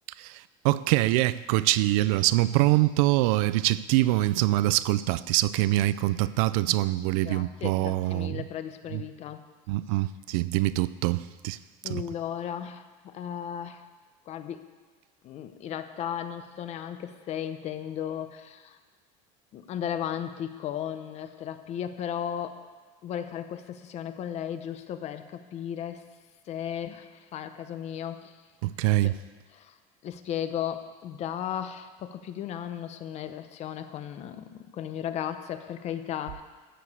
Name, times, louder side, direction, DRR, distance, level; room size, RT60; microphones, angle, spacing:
voice 1, 0.2-8.4 8.9-9.0 9.7-11.6 11.9-12.0 28.6-29.1, right 17 dB, 90° right, 0.4 m, -24 dB
voice 2, 7.2-9.4 11.8-13.8 14.3-14.6 15.2-18.8 19.5-22.6 23.0-26.0 26.5-28.3 29.0-29.1 29.5-29.7 30.0-36.4, left 9 dB, 40° left, 0.7 m, -35 dB
12.5 x 4.9 x 8.1 m
cardioid pair, 155°, 18 cm